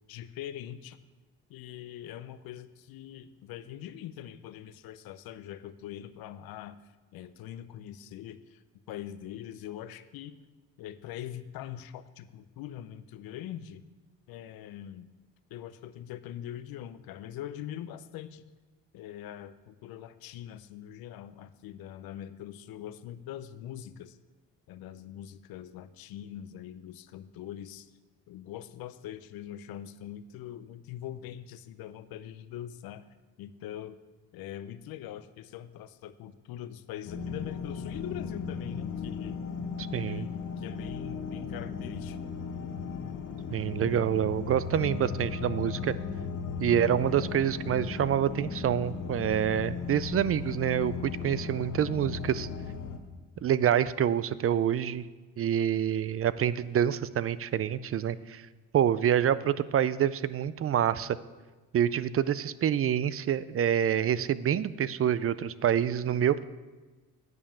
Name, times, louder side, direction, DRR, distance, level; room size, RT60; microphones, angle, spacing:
voice 1, 0.1-1.0 1.5-6.8 7.1-8.6 8.9-10.4 10.8-13.8 14.3-15.1 15.5-18.4 18.9-24.2 24.7-27.9 28.3-33.0 33.4-34.0 34.3-39.4 40.0-42.3, left 11 dB, 70° left, 13 dB, 0.7 m, -43 dB
sound 1, 37.1-53.0, left 5 dB, 50° left, 1.2 m, -36 dB
voice 2, 39.9-40.3 43.5-45.9 46.6-52.5 53.4-55.0 55.4-58.4 58.7-61.2 61.7-66.4, right 9 dB, 40° right, 17 dB, 0.4 m, -27 dB
9.6 x 5.3 x 7.2 m, 1.3 s
supercardioid pair, 75°, 37 cm